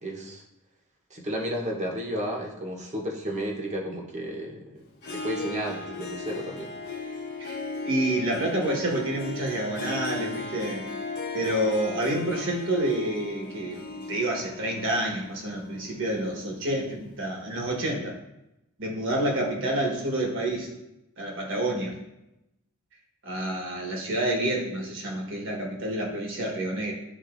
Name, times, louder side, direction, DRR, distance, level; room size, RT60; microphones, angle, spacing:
voice 1, 0.0-0.4 1.1-6.7, equal, 35° right, -1 dB, 1.1 m, -33 dB
Harp, 5.0-16.8, left 3 dB, 50° left, 1.1 m, -37 dB
voice 2, 7.8-10.8 11.3-18.1 18.8-20.7 21.2-22.0 23.2-26.9, right 1 dB, 60° right, 0 dB, 1.4 m, -28 dB
11.0 x 3.8 x 2.6 m, 0.90 s
head